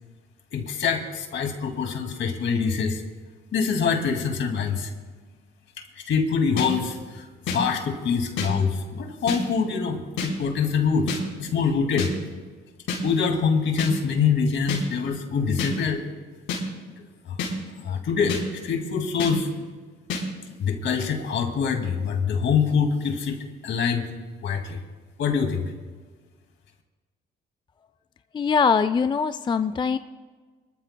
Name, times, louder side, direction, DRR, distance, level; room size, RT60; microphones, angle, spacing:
voice 1, 0.5-3.0 3.5-4.9 6.0-12.1 13.0-16.0 17.3-17.4 17.8-19.5 20.6-24.1 24.4-24.8 25.2-25.7, left 6 dB, 70° left, 3 dB, 2.3 m, -25 dB
sound 1, 6.6-6.7 7.5-7.6 8.4-8.5 9.3-9.4 10.2-10.3 11.1-11.2 12.0-12.1 12.9-13.0 13.8-13.9 14.7-14.8 15.6-15.7 16.5-16.6 17.4-17.5 18.3-18.4 19.2-19.3 20.1-20.2, left 5 dB, 90° left, 3.9 m, -28 dB
voice 2, 28.3-30.0, left 5 dB, 25° left, 11 dB, 0.4 m, -22 dB
24.5 x 14.0 x 2.2 m, 1.4 s
cardioid pair, 90°, 20 cm